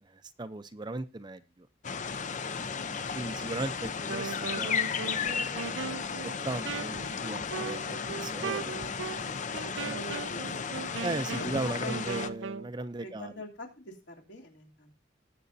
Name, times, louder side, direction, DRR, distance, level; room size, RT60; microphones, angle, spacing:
voice 1, 0.0-1.7 2.3-4.8 5.0-9.2 9.8-10.0 11.0-13.3, right 2 dB, 25° right, 11 dB, 0.6 m, -38 dB
sound 1, 1.8-12.3, left 6 dB, 40° left, 0.6 m, -34 dB
Wind instrument woodwind instrument, 4.0-12.7, right 5 dB, 75° right, 0.5 m, -39 dB
voice 2, 9.6-10.7 11.4-12.0 13.0-15.0, left 2 dB, 65° left, 0 dB, 3.1 m, -44 dB
19.0 x 7.6 x 2.7 m, 0.30 s
head